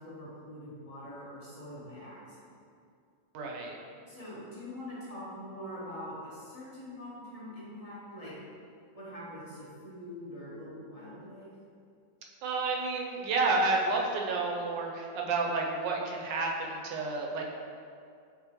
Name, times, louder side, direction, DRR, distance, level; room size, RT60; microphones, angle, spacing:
voice 1, 0.0-2.4 4.1-8.3 8.9-11.5, left 1 dB, 25° left, -9 dB, 0.8 m, -44 dB
voice 2, 3.3-3.8 12.4-17.4, right 3 dB, 75° right, 0 dB, 1.2 m, -30 dB
6.2 x 2.7 x 2.9 m, 2.4 s
omnidirectional pair, 2.0 m